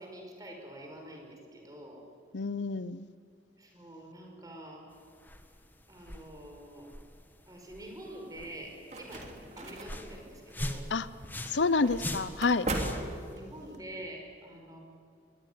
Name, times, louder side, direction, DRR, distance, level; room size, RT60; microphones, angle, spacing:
voice 1, 0.0-2.0 3.6-4.9 5.9-6.9 7.5-10.8 13.2-14.8, right 1 dB, 20° right, 1 dB, 5.1 m, -46 dB
voice 2, 2.3-3.1 10.9-11.1 11.5-12.7, left 4 dB, 85° left, 16 dB, 0.7 m, -28 dB
sound 1, 4.9-13.3, left 1 dB, 10° left, 1.6 m, -43 dB
sound 2, 8.4-13.8, right 1 dB, 40° right, 3.2 m, -39 dB
24.0 x 21.5 x 9.5 m, 2.3 s
head